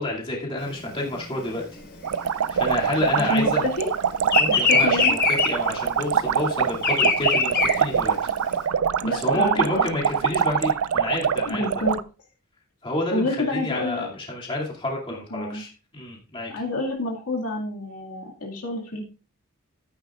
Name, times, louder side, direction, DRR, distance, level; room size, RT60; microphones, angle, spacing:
voice 1, 0.0-1.6 2.5-3.6 4.4-8.2 9.1-11.7 12.8-16.5, left 1 dB, 25° left, -3 dB, 2.5 m, -29 dB
Bird vocalization bird call bird song, 0.7-3.6 3.8-8.6, left 4 dB, 50° left, 4.5 m, -23 dB
sound 1, 2.0-12.0, right 7 dB, 75° right, 0.4 m, -24 dB
voice 2, 3.2-3.9 4.5-5.1 9.0-9.9 11.5-12.0 13.1-14.0 15.3-15.6 16.5-19.0, left 2 dB, 80° left, -1 dB, 2.2 m, -28 dB
14.0 x 9.1 x 2.5 m, 0.35 s
head